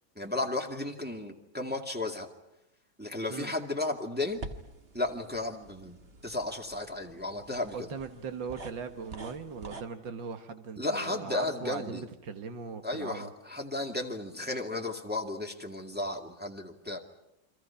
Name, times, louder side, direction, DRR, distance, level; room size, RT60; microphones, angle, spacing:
voice 1, 0.2-2.3 3.0-4.4 4.9-7.9 10.8-12.0 12.8-17.0, left 2 dB, 5° right, 1 dB, 1.9 m, -34 dB
sound 1, 4.3-9.8, right 2 dB, 35° right, 1.5 m, -47 dB
voice 2, 7.7-13.3, right 5 dB, 80° right, 7 dB, 2.3 m, -39 dB
30.0 x 24.5 x 5.8 m, 0.89 s
omnidirectional pair, 2.0 m